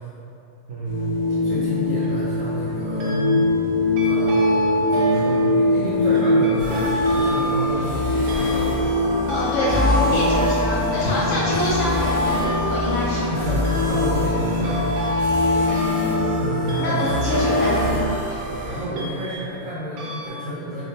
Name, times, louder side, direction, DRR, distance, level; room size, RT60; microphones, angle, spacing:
voice 1, 0.7-1.1 1.4-3.2 3.9-8.8 13.2-14.8 16.3-17.4 18.5-20.8, right 1 dB, 65° right, -9 dB, 0.9 m, -30 dB
sound 1, 0.8-18.0, left 1 dB, 40° left, 0.5 m, -23 dB
sound 2, 1.8-2.2 3.0-3.6 4.0-19.7 20.0-20.3, left 1 dB, 85° right, 0.5 m, -29 dB
sound 3, 6.6-18.9, left 1 dB, 30° right, 0.6 m, -28 dB
voice 2, 9.3-13.2 15.8-16.1 16.8-18.1, left 1 dB, 65° left, -7 dB, 0.8 m, -25 dB
3.6 x 2.3 x 2.7 m, 2.7 s
omnidirectional pair, 1.5 m